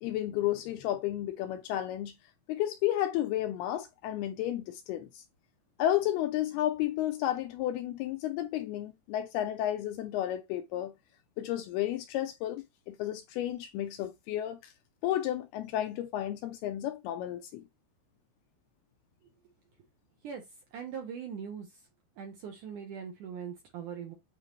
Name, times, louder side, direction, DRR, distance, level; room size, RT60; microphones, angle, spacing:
voice 1, 0.0-2.1 2.5-5.2 5.8-10.9 11.4-14.7 15.0-17.6, left 12 dB, 80° left, 2.4 m, -32 dB
voice 2, 20.7-21.7 22.2-24.1, right 7 dB, 70° right, 2.0 m, -40 dB
8.9 x 3.6 x 3.1 m
omnidirectional pair, 4.9 m